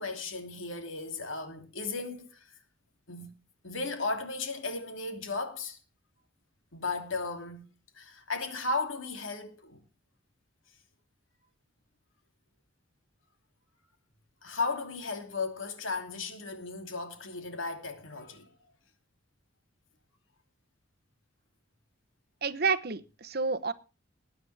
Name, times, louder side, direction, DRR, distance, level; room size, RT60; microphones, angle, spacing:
voice 1, 0.0-2.5 3.1-3.3 3.6-5.8 6.7-7.6 7.9-9.8 14.4-18.5, left 3 dB, 85° left, 2.9 m, -35 dB
voice 2, 22.4-23.7, right 4 dB, 50° right, 0.9 m, -29 dB
20.0 x 9.5 x 3.5 m
head